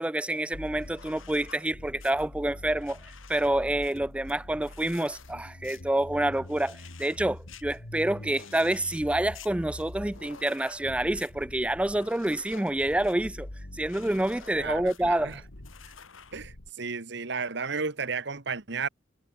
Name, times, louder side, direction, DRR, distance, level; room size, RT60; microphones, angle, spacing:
voice 1, 0.0-3.0 3.3-13.5 13.7-15.4, right 1 dB, 5° right, 0.3 m, -28 dB
sound 1, 0.5-16.7, left 2 dB, 85° left, 2.5 m, -44 dB
voice 2, 14.5-15.4 16.3-18.9, right 5 dB, 60° right, 1.4 m, -33 dB
head